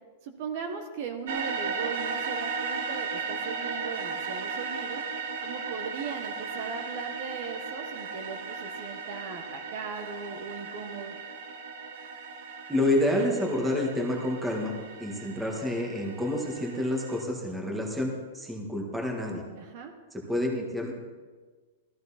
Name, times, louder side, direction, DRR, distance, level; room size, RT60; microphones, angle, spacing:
voice 1, 0.2-5.0 5.4-11.2 19.5-19.9, right 5 dB, 40° right, 4 dB, 1.2 m, -38 dB
sound 1, 1.3-17.2, right 5 dB, 55° right, 1.6 m, -36 dB
voice 2, 12.7-14.7 15.0-19.4 20.1-20.9, left 1 dB, 5° right, 0 dB, 1.6 m, -28 dB
15.0 x 14.0 x 4.2 m, 1.4 s
supercardioid pair, 170°, 0 cm